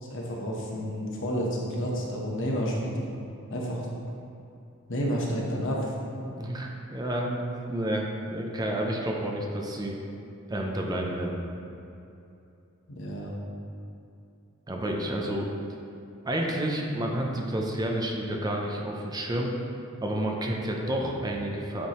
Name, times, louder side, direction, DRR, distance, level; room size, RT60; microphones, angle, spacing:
voice 1, 0.0-2.9 3.5-3.9 4.9-5.9 12.9-13.3, equal, 60° left, -3 dB, 1.1 m, -30 dB
voice 2, 6.2-10.0 10.5-11.4 14.7-15.5 16.2-19.5 20.0-21.9, right 1 dB, 20° right, 0 dB, 0.5 m, -30 dB
8.3 x 4.7 x 3.0 m, 2.7 s
head